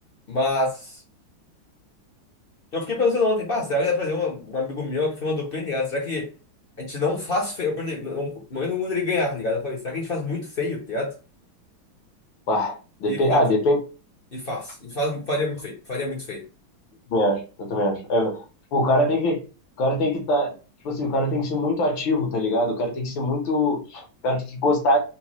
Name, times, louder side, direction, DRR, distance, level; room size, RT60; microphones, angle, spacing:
voice 1, 0.3-1.0 2.7-6.3 6.8-11.1 13.0-13.4 14.3-16.5, left 3 dB, 50° left, -2 dB, 0.6 m, -26 dB
voice 2, 12.5-13.8 17.1-18.4 18.7-19.4 19.8-20.5 20.8-25.0, left 1 dB, 75° left, 2 dB, 1.7 m, -23 dB
4.4 x 2.1 x 3.0 m, 0.34 s
omnidirectional pair, 2.2 m